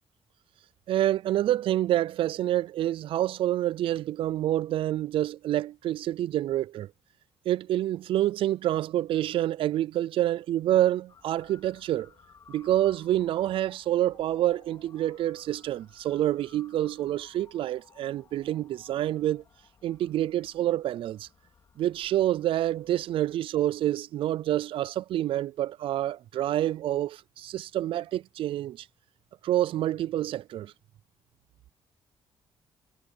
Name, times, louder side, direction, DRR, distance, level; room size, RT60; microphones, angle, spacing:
voice 1, 0.9-6.9 7.5-12.1 12.5-19.4 19.8-21.3 21.8-28.9 29.4-30.7, right 13 dB, 65° right, 0.3 m, -27 dB
Motor vehicle (road) / Siren, 11.1-23.3, left 6 dB, 40° left, 2.3 m, -58 dB
cardioid pair, 165°, 10 cm